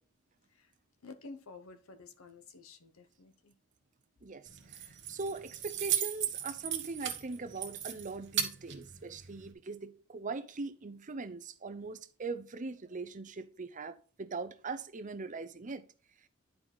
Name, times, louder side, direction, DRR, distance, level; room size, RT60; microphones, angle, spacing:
voice 1, 1.0-3.5, left 3 dB, 80° left, 0.9 m, -51 dB
Keys jangling, 4.5-9.5, right 10 dB, 55° right, 1.1 m, -37 dB
voice 2, 5.1-15.8, right 4 dB, 35° right, 0.6 m, -41 dB
10.5 x 4.7 x 3.9 m
head